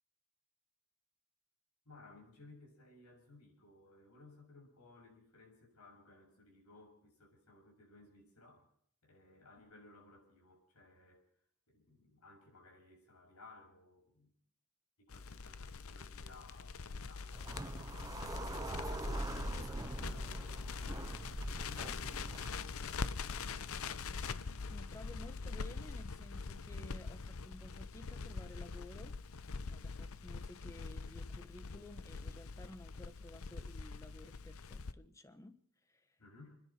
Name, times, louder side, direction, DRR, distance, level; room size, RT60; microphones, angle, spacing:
voice 1, 1.9-8.7 9.0-11.3 11.7-14.3 15.0-17.6 18.0-21.0 21.4-23.9 36.2-36.6, left 2 dB, 90° left, 0 dB, 7.1 m, -60 dB
Crackle, 15.1-34.9, left 4 dB, 65° left, 0.7 m, -43 dB
sound 1, 17.3-22.5, right 1 dB, 15° right, 0.6 m, -43 dB
voice 2, 24.7-29.2 29.7-36.2, left 1 dB, 15° left, 9 dB, 1.2 m, -54 dB
29.5 x 10.5 x 4.4 m, 0.65 s
head